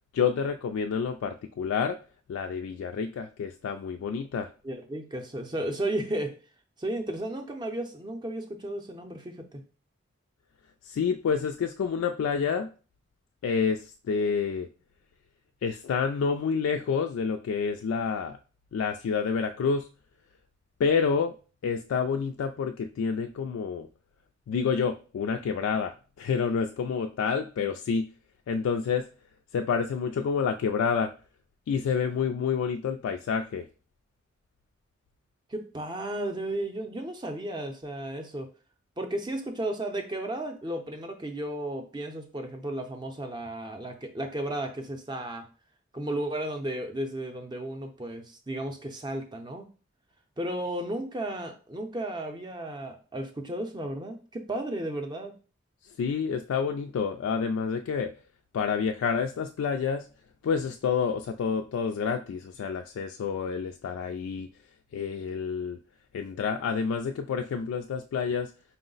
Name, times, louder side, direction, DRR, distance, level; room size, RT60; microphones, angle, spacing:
voice 1, 0.1-2.0 2.3-4.5 10.8-12.7 13.4-14.7 15.6-18.4 18.7-19.9 20.8-21.3 21.6-23.9 24.5-28.1 28.5-29.0 29.5-31.1 31.7-33.7 56.0-58.1 58.5-60.1 60.4-64.5 64.9-65.8 66.1-68.5, left 6 dB, 90° left, 5 dB, 0.3 m, -28 dB
voice 2, 4.6-6.3 6.8-9.6 35.5-38.5 39.0-45.5 45.9-49.7 50.4-55.3, right 1 dB, 20° right, 5 dB, 0.5 m, -34 dB
4.6 x 2.0 x 3.8 m, 0.35 s
head